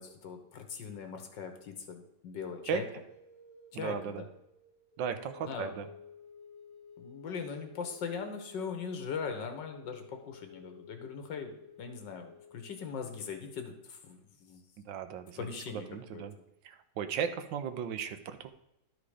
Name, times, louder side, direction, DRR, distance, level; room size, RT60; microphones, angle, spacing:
voice 1, 0.0-2.8 3.7-4.3 5.4-5.7 7.0-11.5 11.8-14.6 15.4-15.9 16.1-16.2, left 6 dB, 80° left, 6 dB, 1.8 m, -40 dB
sound 1, 2.9-13.5, left 5 dB, 10° left, 1.2 m, -54 dB
voice 2, 3.7-4.2 5.0-5.9 14.9-16.3 16.6-18.5, right 7 dB, 85° right, 10 dB, 1.5 m, -36 dB
12.0 x 4.9 x 4.9 m, 0.87 s
omnidirectional pair, 1.9 m